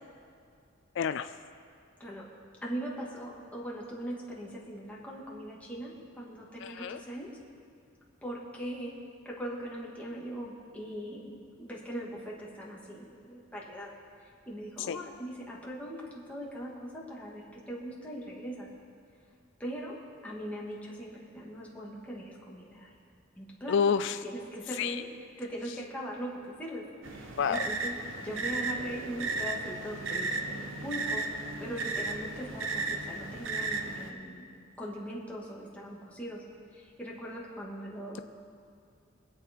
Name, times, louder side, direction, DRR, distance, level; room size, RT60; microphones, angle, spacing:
voice 1, 1.0-1.3 6.6-7.0 14.9-15.0 23.7-24.2 24.8-25.0 27.4-27.6, left 6 dB, 60° left, 10 dB, 0.3 m, -28 dB
voice 2, 2.6-7.3 8.2-8.9 9.2-13.9 14.5-18.7 19.6-20.0 20.2-23.1 23.4-23.8 24.2-25.0 25.4-27.9 28.2-34.5 34.8-36.4 36.7-38.2, equal, 5° left, -4 dB, 2.3 m, -40 dB
sound 1, 27.0-34.1, right 3 dB, 70° right, 1.1 m, -35 dB
24.0 x 8.3 x 4.6 m, 2.4 s
head